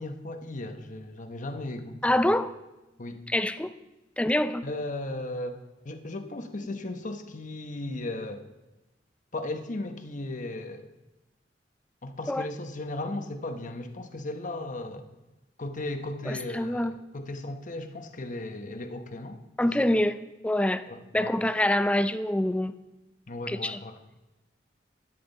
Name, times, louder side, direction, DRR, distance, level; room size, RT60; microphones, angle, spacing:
voice 1, 0.0-2.3 3.0-3.2 4.6-8.5 9.3-10.9 12.0-15.1 15.6-19.7 20.9-21.4 23.3-24.0, left 2 dB, 45° left, 7 dB, 1.0 m, -36 dB
voice 2, 2.0-2.5 3.3-3.7 4.2-4.7 12.3-12.5 16.3-16.9 19.6-22.7 23.5-23.8, left 1 dB, 5° left, 12 dB, 0.4 m, -26 dB
13.5 x 12.0 x 3.9 m, 1.0 s
head